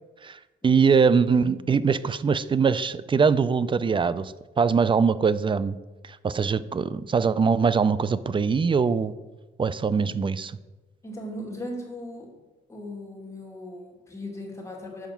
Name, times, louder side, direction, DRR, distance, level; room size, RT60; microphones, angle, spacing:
voice 1, 0.2-5.8 6.2-9.1 9.6-10.5, right 5 dB, 25° right, 16 dB, 0.4 m, -22 dB
voice 2, 11.0-12.3 12.7-15.1, left 1 dB, 15° left, -1 dB, 2.3 m, -38 dB
7.1 x 5.3 x 5.8 m, 1.1 s
cardioid pair, 90°, 20 cm